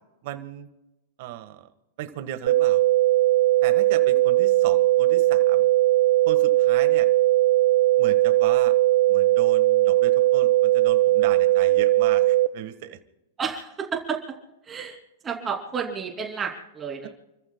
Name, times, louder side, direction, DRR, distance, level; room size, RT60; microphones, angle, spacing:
voice 1, 0.2-0.7 1.2-1.7 2.0-2.8 3.6-5.7 6.2-7.1 8.0-8.7 9.1-13.0, right 12 dB, 55° right, 8 dB, 1.6 m, -36 dB
sound 1, 2.5-12.5, right 16 dB, 70° right, 0.5 m, -19 dB
voice 2, 13.4-14.2 14.7-15.0 15.2-17.1, right 6 dB, 20° right, 0 dB, 3.0 m, -31 dB
30.0 x 14.5 x 2.3 m, 0.99 s
hypercardioid pair, 145°, 0 cm